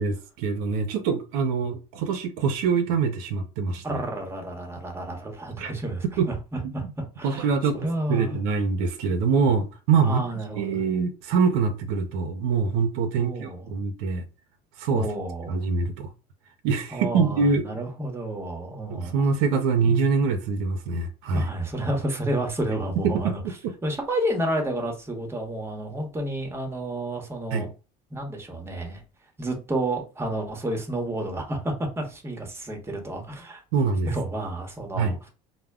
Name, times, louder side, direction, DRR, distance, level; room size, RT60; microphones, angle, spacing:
voice 1, 0.0-4.0 5.6-5.7 6.2-6.3 6.6-6.7 7.2-10.2 10.6-14.2 14.8-15.1 15.5-16.1 16.6-17.7 18.9-21.5 23.0-23.4 27.5-27.7 33.7-34.1 35.0-35.2, right 5 dB, 85° right, 0.5 m, -24 dB
voice 2, 3.8-6.9 7.2-7.5 7.7-8.4 10.0-10.8 13.2-13.7 14.9-15.6 16.9-19.2 21.3-23.4 23.8-27.7 28.1-29.0 29.4-33.6 34.1-35.2, right 1 dB, 15° right, 0.9 m, -30 dB
2.1 x 2.1 x 3.5 m
supercardioid pair, 100°, 19 cm